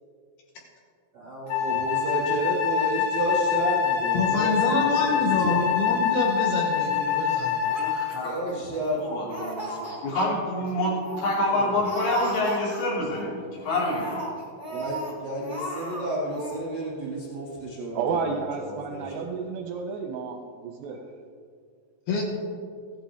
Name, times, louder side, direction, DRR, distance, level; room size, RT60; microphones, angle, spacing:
voice 1, 1.1-5.6 8.2-9.9 11.4-11.8 14.7-19.0, right 1 dB, 50° right, -5 dB, 1.3 m, -32 dB
Wind instrument woodwind instrument, 1.5-8.3, left 7 dB, 55° left, 2.0 m, -25 dB
voice 2, 4.1-7.6 22.1-22.3, left 3 dB, 70° left, 0 dB, 2.5 m, -27 dB
Laughter, 7.6-8.9 9.2-10.3 10.7-10.8 11.0-11.4 11.8-13.1 13.6-15.1 15.4-16.0 16.3-16.6, right 1 dB, 40° left, 0.6 m, -35 dB
voice 3, 7.8-8.3 9.0-9.3 10.0-13.4 13.7-14.2, left 1 dB, 90° left, -5 dB, 5.5 m, -26 dB
voice 4, 17.9-21.0, right 5 dB, 80° right, 3 dB, 2.4 m, -31 dB
15.5 x 11.5 x 3.5 m, 2.2 s
omnidirectional pair, 5.5 m